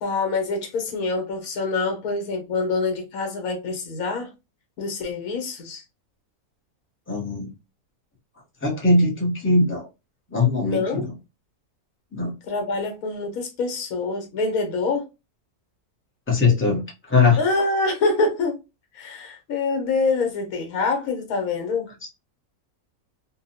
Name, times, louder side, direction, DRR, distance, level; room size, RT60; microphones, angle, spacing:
voice 1, 0.0-4.3 4.8-5.8 10.6-11.0 12.5-15.1 17.4-18.6 18.9-21.9, left 3 dB, 70° left, 1.3 m, -25 dB
voice 2, 7.1-7.5 8.6-9.9 10.3-11.1 12.1-12.3 16.3-17.4, left 3 dB, 15° left, 0.5 m, -20 dB
2.6 x 2.2 x 2.6 m
omnidirectional pair, 1.6 m